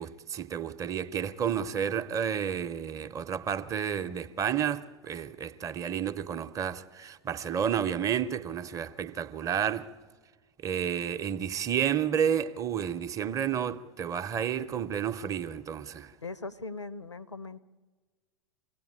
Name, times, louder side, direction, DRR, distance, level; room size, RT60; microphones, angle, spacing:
voice 1, 0.0-9.9 10.6-16.1, right 8 dB, 25° right, 0.7 m, -31 dB
voice 2, 16.2-17.6, left 3 dB, 85° left, 0.6 m, -39 dB
25.0 x 17.0 x 8.7 m
figure-of-eight pair, 90°, 15 cm